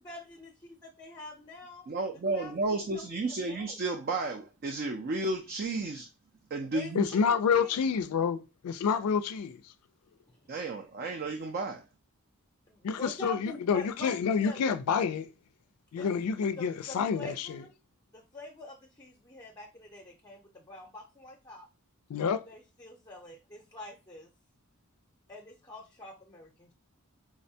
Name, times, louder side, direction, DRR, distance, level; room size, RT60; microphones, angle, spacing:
voice 1, 0.0-0.5 0.8-1.9 2.3-3.8 6.7-7.8 10.3-10.4 12.7-14.6 16.0-16.1 16.6-17.7 18.1-21.7 22.5-24.3 25.3-26.7, left 2 dB, 20° left, 0.6 m, -46 dB
voice 2, 1.9-6.1 6.5-7.1 10.5-11.8, right 3 dB, 45° right, 0.4 m, -32 dB
voice 3, 6.9-9.7 12.8-15.3 15.9-17.6 22.1-22.4, left 6 dB, 85° left, 0.4 m, -28 dB
4.7 x 2.1 x 2.6 m
head